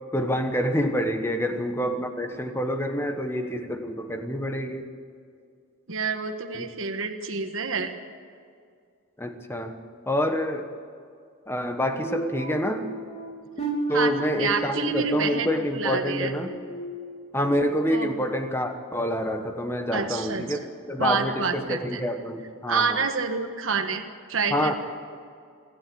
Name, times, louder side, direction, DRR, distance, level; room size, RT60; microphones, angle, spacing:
voice 1, 0.1-4.9 6.5-6.7 9.2-9.8 10.1-10.7 11.5-12.9 13.9-16.5 17.3-23.0 24.5-24.7, equal, 10° left, 6 dB, 1.3 m, -27 dB
voice 2, 5.9-7.9 13.9-15.5 15.7-16.3 17.9-18.2 19.9-20.6 21.0-22.0 22.7-24.0 24.3-24.7, right 5 dB, 65° right, 5 dB, 1.5 m, -28 dB
sound 1, 12.0-17.7 18.1-18.4 18.9-19.1, right 1 dB, 30° left, 3.1 m, -34 dB
26.5 x 13.0 x 8.6 m, 2.2 s
head